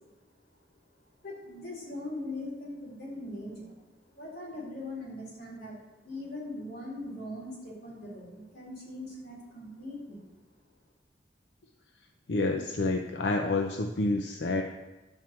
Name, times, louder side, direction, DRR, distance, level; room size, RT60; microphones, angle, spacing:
voice 1, 1.2-3.7 4.1-5.8 6.0-10.3, left 1 dB, 60° left, -5 dB, 3.9 m, -40 dB
voice 2, 12.3-14.6, left 2 dB, 85° left, 4 dB, 0.7 m, -28 dB
11.0 x 4.5 x 7.4 m, 1.1 s
head